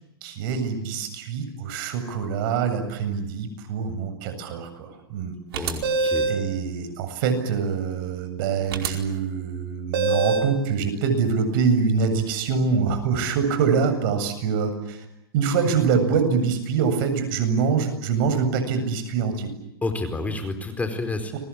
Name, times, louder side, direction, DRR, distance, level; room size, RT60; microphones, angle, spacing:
voice 1, 0.2-5.6 6.3-15.0 15.3-19.5 21.3-21.4, right 5 dB, 55° right, 8 dB, 7.7 m, -24 dB
voice 2, 5.5-6.3 19.8-21.4, left 2 dB, 10° left, 7 dB, 4.5 m, -29 dB
sound 1, 5.5-6.4 8.7-8.9 9.9-10.5, right 3 dB, 75° right, 4.8 m, -23 dB
30.0 x 23.0 x 8.7 m, 0.86 s
hypercardioid pair, 115°, 13 cm